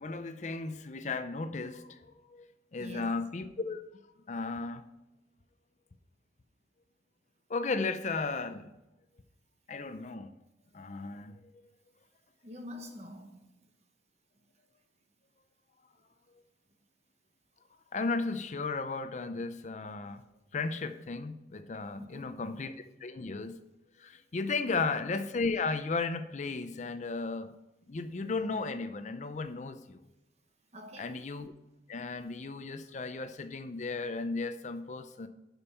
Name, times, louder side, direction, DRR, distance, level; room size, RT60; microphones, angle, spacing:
voice 1, 0.0-2.5 2.7-3.8 4.3-4.8 7.5-8.7 9.7-10.3 10.7-11.4 17.9-20.2 20.5-23.6 24.0-27.5 27.9-30.0 31.0-31.5 31.9-35.3, left 3 dB, 40° left, 0.5 m, -35 dB
voice 2, 2.8-3.2 12.4-13.5 22.0-22.4 24.6-24.9 30.7-31.2, left 1 dB, 35° right, 1.3 m, -46 dB
11.5 x 5.4 x 5.6 m
head